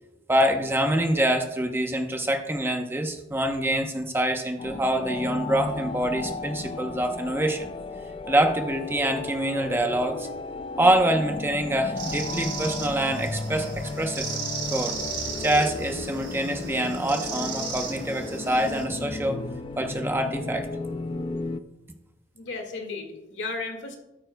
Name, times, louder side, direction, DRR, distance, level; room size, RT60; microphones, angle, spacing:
voice 1, 0.3-7.7 8.3-10.3 10.8-13.7 14.0-14.3 14.7-15.0 15.4-19.4 19.8-20.7, right 1 dB, 15° right, 4 dB, 0.8 m, -25 dB
sound 1, 4.6-21.6, left 3 dB, 30° left, 0.4 m, -34 dB
sound 2, 12.0-18.8, right 5 dB, 90° right, 4.1 m, -36 dB
voice 2, 22.3-24.0, left 3 dB, 70° left, 4 dB, 2.0 m, -34 dB
13.5 x 12.5 x 2.2 m, 0.96 s
head